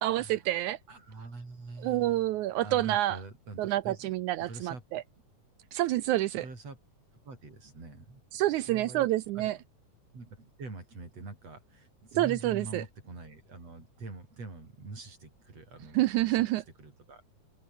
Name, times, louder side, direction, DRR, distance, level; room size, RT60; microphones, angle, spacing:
voice 1, 0.0-0.8 1.8-3.2 3.6-5.0 5.7-6.5 8.3-9.6 12.2-12.8 15.9-16.6, right 15 dB, 80° right, 1.8 m, -28 dB
voice 2, 0.9-2.3 2.6-4.1 4.4-4.8 6.3-6.8 7.2-9.1 9.3-9.6 10.1-17.3, right 3 dB, 45° right, 8.2 m, -45 dB
omnidirectional pair, 4.0 m